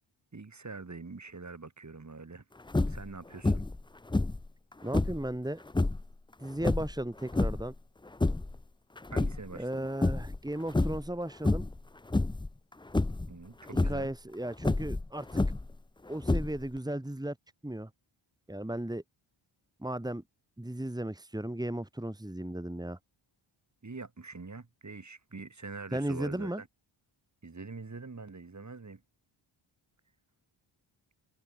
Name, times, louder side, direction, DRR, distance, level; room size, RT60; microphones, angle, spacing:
voice 1, 0.3-2.4 2.9-3.6 9.1-9.9 13.3-14.1 23.8-26.7 27.4-29.0, right 4 dB, 35° right, 6.2 m, -44 dB
sound 1, 2.7-3.1 3.4-3.8 4.1-5.3 5.7-6.1 6.6-7.7 8.1-8.6 9.0-9.7 10.0-10.4 10.7-11.1 11.4-11.8 12.1-12.5 12.9-13.3 13.7-14.0 14.6-15.8 16.2-16.8, left 2 dB, 10° left, 0.6 m, -28 dB
voice 2, 4.8-5.6 6.4-7.7 9.5-11.6 13.7-15.4 16.1-17.4 17.6-17.9 18.5-19.0 19.8-20.2 20.6-23.0 25.9-26.6, right 1 dB, 10° right, 3.4 m, -35 dB
wide cardioid pair, 90°, 49 cm